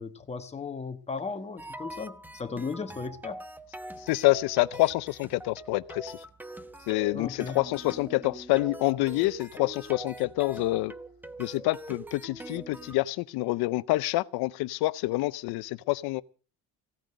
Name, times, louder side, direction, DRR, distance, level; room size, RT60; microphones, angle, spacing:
voice 1, 0.0-3.4 7.1-7.6, left 4 dB, 15° left, 1.3 m, -36 dB
sound 1, 1.6-13.0, right 1 dB, 5° right, 0.8 m, -44 dB
voice 2, 4.0-6.2 6.9-10.9 11.4-16.2, left 19 dB, 80° left, 0.7 m, -27 dB
16.5 x 9.2 x 7.7 m
cardioid pair, 150°, 38 cm